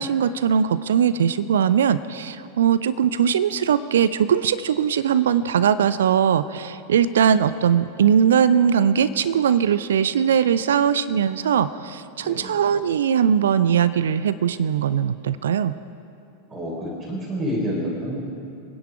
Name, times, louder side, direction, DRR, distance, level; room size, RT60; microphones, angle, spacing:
voice 1, 0.0-15.7, right 8 dB, 65° right, 15 dB, 0.5 m, -20 dB
voice 2, 16.5-18.2, equal, 25° right, -3 dB, 4.4 m, -28 dB
27.0 x 10.5 x 4.9 m, 2.6 s
figure-of-eight pair, 90°, 0 cm